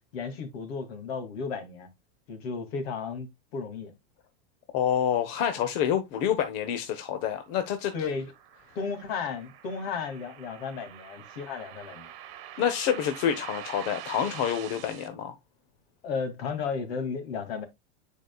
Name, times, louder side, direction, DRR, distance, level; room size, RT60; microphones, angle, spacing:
voice 1, 0.1-1.9 2.3-3.9 7.9-8.3 8.8-12.1 16.0-17.6, left 5 dB, 70° left, 2.3 m, -34 dB
voice 2, 4.7-7.9 12.6-15.3, left 9 dB, 45° left, 0.9 m, -27 dB
sound 1, 7.3-15.1, right 11 dB, 45° right, 1.6 m, -45 dB
9.3 x 4.8 x 2.2 m
supercardioid pair, 160°, 32 cm